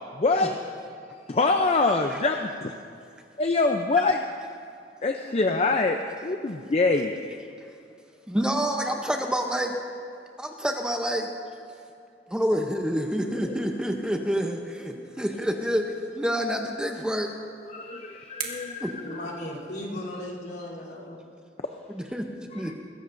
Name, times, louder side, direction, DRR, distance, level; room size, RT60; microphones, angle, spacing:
voice 1, 0.2-0.5 1.3-2.7 3.4-4.2 5.0-7.1 13.4-13.6 15.0-15.1 17.7-18.9 22.5-22.7, left 3 dB, 35° left, 5 dB, 0.5 m, -24 dB
voice 2, 8.3-9.7 10.4-11.3 12.3-17.3 18.8-18.9 21.9-22.7, equal, 5° right, 3 dB, 0.7 m, -28 dB
sound 1, 17.3-20.0, right 7 dB, 55° right, 1.7 m, -42 dB
voice 3, 19.0-21.2, left 1 dB, 65° left, -6 dB, 3.2 m, -36 dB
21.5 x 16.0 x 2.6 m, 2.4 s
head